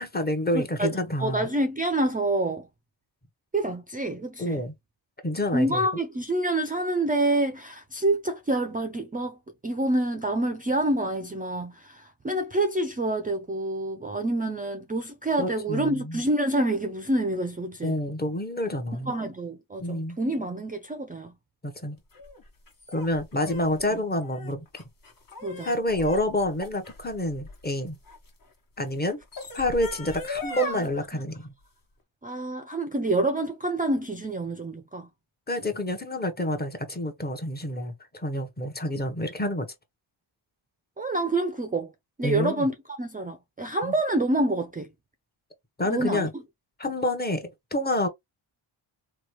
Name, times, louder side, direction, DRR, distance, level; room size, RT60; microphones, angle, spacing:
voice 1, 0.0-1.5 4.4-4.8 5.2-6.0 15.4-16.2 17.8-19.1 19.8-20.2 21.6-22.0 22.9-24.6 25.6-28.0 28.8-29.2 29.5-31.5 35.5-39.7 42.2-42.7 43.8-43.9 45.8-46.3 46.8-48.1, left 1 dB, 20° left, 0.9 m, -28 dB
voice 2, 0.5-2.7 3.5-4.6 5.5-9.4 9.6-17.9 19.1-21.3 23.9-24.0 25.4-25.7 30.6-30.7 32.2-35.1 41.0-41.9 42.2-44.9 45.9-46.3, right 1 dB, 20° right, 0.5 m, -27 dB
sound 1, 22.1-28.3 29.1-30.9, left 3 dB, 45° left, 1.3 m, -39 dB
3.0 x 2.3 x 3.0 m
cardioid pair, 75°, 49 cm